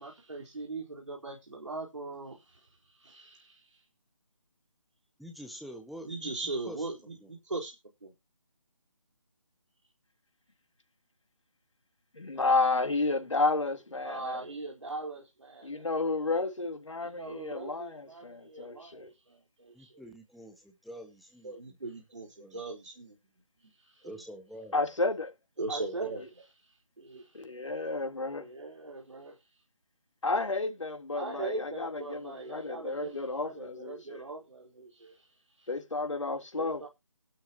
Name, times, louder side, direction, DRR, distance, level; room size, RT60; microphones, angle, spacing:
voice 1, 0.0-3.8 6.0-7.7 8.0-8.1 14.0-15.9 17.0-20.0 21.4-23.2 23.8-24.2 25.6-26.6 27.0-27.4 28.3-29.4 31.1-35.2 35.6-35.7 36.6-36.9, right 3 dB, 65° right, 4.4 m, -40 dB
voice 2, 5.2-6.3 6.7-6.8 7.2-7.3 19.7-21.8 22.4-22.6 24.0-24.7, equal, ahead, 1.5 m, -46 dB
voice 3, 12.1-14.4 15.6-19.1 24.7-25.3 27.3-28.5 30.2-34.2 35.7-36.8, left 3 dB, 65° left, 3.6 m, -31 dB
17.5 x 12.5 x 3.0 m
figure-of-eight pair, 155°, 17 cm